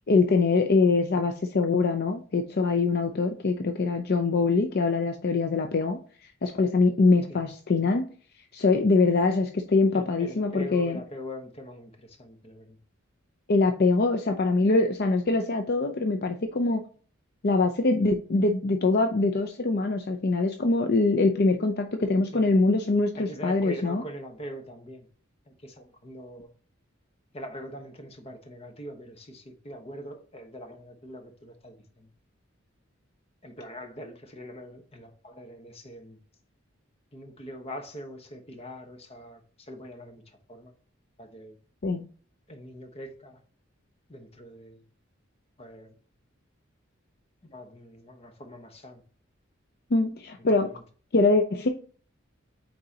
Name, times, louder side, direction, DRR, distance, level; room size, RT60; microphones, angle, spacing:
voice 1, 0.1-6.0 6.4-8.0 8.5-11.0 13.5-16.8 17.4-24.0 41.8-42.1 49.9-50.7 51.1-51.7, left 3 dB, 55° left, 0.6 m, -23 dB
voice 2, 9.9-12.8 22.3-22.5 23.2-25.1 25.5-26.5 27.3-32.1 33.4-36.2 37.1-40.7 41.2-41.6 42.5-43.4 44.1-44.8 45.6-45.9 47.4-49.0 50.5-50.8, equal, 30° left, 1.1 m, -43 dB
8.6 x 3.9 x 2.8 m
head